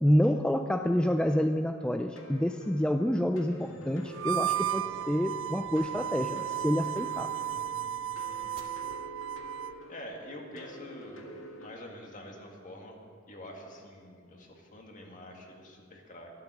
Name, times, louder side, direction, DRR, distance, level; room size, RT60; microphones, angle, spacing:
voice 1, 0.0-7.3, equal, 5° left, 6 dB, 0.3 m, -28 dB
sound 1, 2.2-11.8, right 1 dB, 85° left, 1.9 m, -48 dB
sound 2, 3.6-8.6, right 1 dB, 30° right, 1.7 m, -55 dB
Harmonica, 4.1-9.8, right 11 dB, 70° right, 0.4 m, -34 dB
voice 2, 9.9-11.3 11.6-12.9 13.3-16.3, left 1 dB, 40° left, 1 dB, 2.0 m, -46 dB
12.5 x 12.0 x 6.2 m, 2.3 s
head